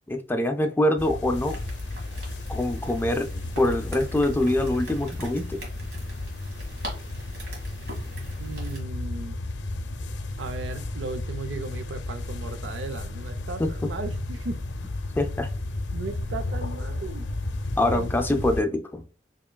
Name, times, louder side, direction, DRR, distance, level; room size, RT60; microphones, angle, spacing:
voice 1, 0.1-1.6 2.5-5.6 13.6-13.9 15.2-15.5 17.8-19.0, left 1 dB, 10° left, 0.3 m, -25 dB
sound 1, 1.0-18.6, left 2 dB, 70° left, 0.5 m, -33 dB
sound 2, 1.3-8.8, right 1 dB, 60° right, 1.5 m, -43 dB
voice 2, 8.4-9.4 10.4-14.6 15.9-17.3 17.9-18.4, right 3 dB, 80° right, 0.5 m, -36 dB
4.7 x 2.9 x 2.2 m
head